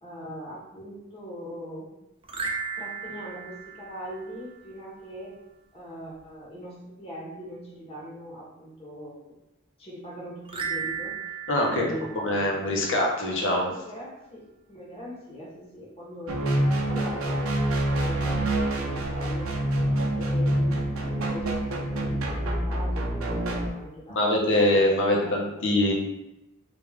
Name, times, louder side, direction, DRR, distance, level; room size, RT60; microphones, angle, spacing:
voice 1, 0.0-1.9 2.8-5.4 5.7-9.2 9.8-11.1 11.6-12.6 13.7-17.4 17.9-19.5 20.1-24.4 24.7-25.9, equal, 30° left, -5 dB, 0.9 m, -41 dB
sound 1, 2.2-4.7 10.5-13.1, right 5 dB, 25° right, 0.4 m, -36 dB
voice 2, 11.5-11.8 12.1-13.7 24.1-25.9, left 1 dB, 65° left, -1 dB, 0.7 m, -23 dB
sound 2, 16.3-23.7, right 1 dB, 85° right, 0.7 m, -26 dB
3.5 x 2.4 x 3.5 m, 0.92 s
head